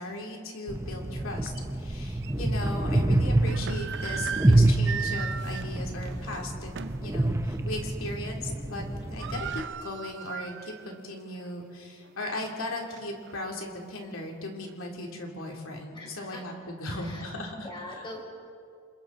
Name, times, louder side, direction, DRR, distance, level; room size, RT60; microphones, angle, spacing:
voice 1, 0.0-6.7 7.0-17.7, left 1 dB, 65° left, 1 dB, 3.1 m, -37 dB
sound 1, 0.7-9.6, right 1 dB, 15° right, 0.6 m, -27 dB
sound 2, 1.5-1.6 2.2-2.3 3.2-7.1 7.5-7.7 8.0-8.4 8.7-8.8 9.0-11.0 11.4-11.5 12.1-13.4, right 8 dB, 50° right, 0.6 m, -38 dB
voice 2, 9.0-9.4 15.9-16.4 16.8-17.2 17.5-18.3, left 1 dB, 20° left, 0 dB, 4.2 m, -43 dB
28.5 x 26.0 x 4.0 m, 2.3 s
head